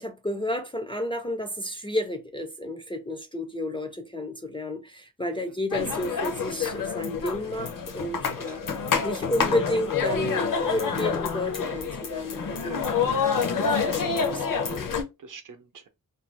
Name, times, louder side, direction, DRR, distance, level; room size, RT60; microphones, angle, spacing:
voice 1, 0.0-8.6 9.0-12.8 13.6-14.9, left 1 dB, 15° left, 0.3 m, -31 dB
sound 1, 5.7-15.0, left 6 dB, 60° left, 0.6 m, -28 dB
voice 2, 8.3-8.7 12.5-14.3 15.2-15.9, right 5 dB, 60° right, 0.6 m, -48 dB
2.5 x 2.2 x 3.2 m
wide cardioid pair, 130°, 36 cm